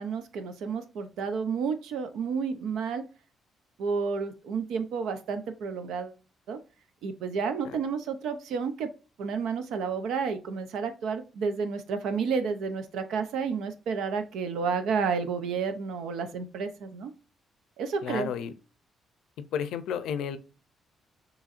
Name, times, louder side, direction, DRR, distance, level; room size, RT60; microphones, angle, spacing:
voice 1, 0.0-3.0 3.8-6.1 6.5-6.6 7.0-8.9 9.2-17.1 17.8-18.3, right 5 dB, 80° right, 0.7 m, -31 dB
voice 2, 18.0-18.5 19.4-20.4, left 8 dB, 85° left, 0.5 m, -32 dB
6.2 x 3.1 x 2.5 m
cardioid pair, 90°, 0 cm